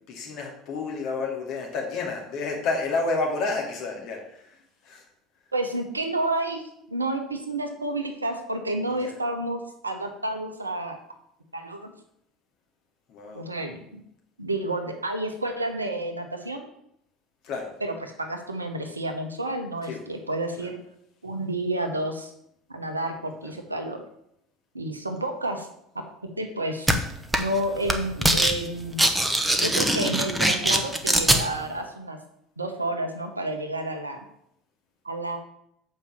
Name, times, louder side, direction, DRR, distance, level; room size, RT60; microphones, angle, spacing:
voice 1, 0.1-4.2 4.9-5.0 9.0-9.1 13.1-13.4 17.4-17.7 19.9-20.0 20.6-20.7 23.4-23.5, left 3 dB, 50° left, 0 dB, 2.4 m, -30 dB
voice 2, 5.5-11.0 11.5-11.9 13.3-14.0 14.4-16.6 17.8-20.8 21.2-22.3 22.7-24.0 24.7-25.7 26.4-27.0 27.4-29.0 29.6-32.2 32.6-34.2 35.0-35.4, right 1 dB, 85° right, 5 dB, 1.1 m, -30 dB
sound 1, 26.9-27.0 27.3-27.6 27.8-28.5 28.8-31.4, right 1 dB, 10° right, 1.2 m, -21 dB
7.3 x 5.4 x 7.3 m, 0.74 s
figure-of-eight pair, 65°, 0 cm